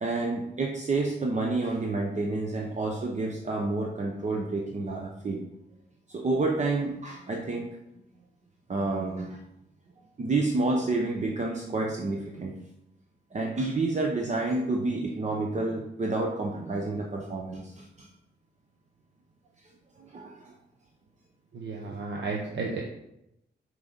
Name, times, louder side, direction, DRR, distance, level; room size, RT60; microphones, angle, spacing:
voice 1, 0.0-5.4 6.1-7.7 8.7-9.4 10.2-12.6 13.3-18.1 20.0-20.5, right 3 dB, 40° right, 0 dB, 0.9 m, -29 dB
voice 2, 21.5-22.8, right 4 dB, 90° right, -1 dB, 1.0 m, -33 dB
6.1 x 4.7 x 5.3 m, 0.84 s
wide cardioid pair, 125°, 18 cm